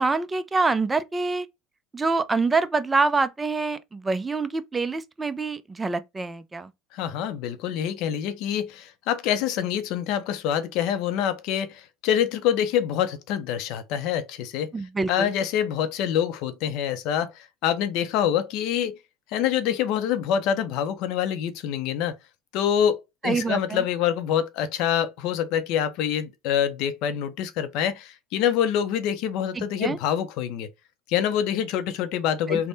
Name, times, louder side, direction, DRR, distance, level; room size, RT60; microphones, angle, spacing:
voice 1, 0.0-1.5 1.9-6.7 14.7-15.3 23.2-23.8 29.6-30.0 32.5-32.6, right 3 dB, 15° right, 0.4 m, -26 dB
voice 2, 6.9-14.7 15.1-19.0 19.3-22.2 22.5-30.7 31.1-32.7, left 9 dB, 70° left, 0.6 m, -26 dB
3.4 x 2.1 x 3.9 m
cardioid pair, 125°, 0 cm